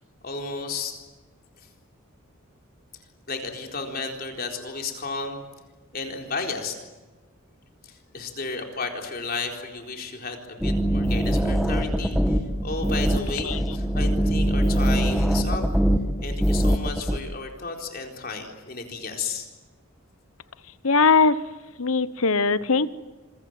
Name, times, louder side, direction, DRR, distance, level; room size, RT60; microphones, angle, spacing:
voice 1, 0.2-1.0 3.3-5.4 5.9-6.8 7.8-15.6 16.2-19.5, left 4 dB, 45° left, 3 dB, 4.0 m, -33 dB
sound 1, 10.6-17.2, equal, ahead, 1.4 m, -22 dB
voice 2, 13.4-13.8 20.8-21.4 21.8-22.9, left 4 dB, 75° left, 16 dB, 1.0 m, -20 dB
27.0 x 22.0 x 9.0 m, 1.2 s
head